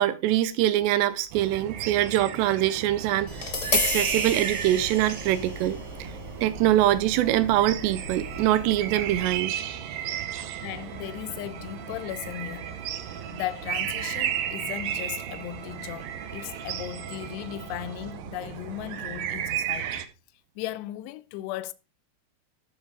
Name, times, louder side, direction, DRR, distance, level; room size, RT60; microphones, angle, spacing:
voice 1, 0.0-6.1 6.4-9.5 10.4-10.5, right 13 dB, 90° right, 2.9 m, -24 dB
sound 1, 1.3-20.1, right 10 dB, 70° right, 2.3 m, -34 dB
Tap, 3.3-9.4, left 3 dB, 40° left, 1.0 m, -33 dB
Bowed string instrument, 8.1-18.2, right 4 dB, 55° right, 1.2 m, -48 dB
voice 2, 10.6-12.8 13.3-20.0 20.6-21.7, left 14 dB, 85° left, 2.8 m, -36 dB
13.5 x 5.6 x 4.8 m
omnidirectional pair, 4.9 m